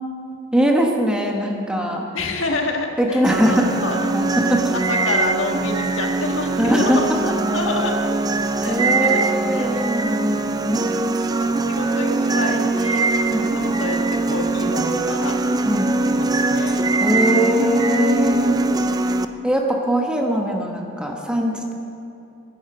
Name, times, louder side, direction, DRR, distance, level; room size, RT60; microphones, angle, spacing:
voice 1, 0.5-2.0 3.0-3.7 4.1-4.7 6.6-7.0 8.7-10.8 13.3-13.5 15.6-15.9 17.0-18.6 19.4-21.7, equal, 5° right, 1 dB, 1.2 m, -21 dB
voice 2, 2.1-4.2 4.5-8.1 8.6-9.2 9.5-9.8 11.3-13.1 13.5-14.0 14.3-15.4 16.1-16.9 18.4-18.9, left 2 dB, 85° left, 2 dB, 1.6 m, -28 dB
sound 1, 3.2-19.3, right 3 dB, 20° right, 0.4 m, -22 dB
13.0 x 10.5 x 6.1 m, 2.6 s
head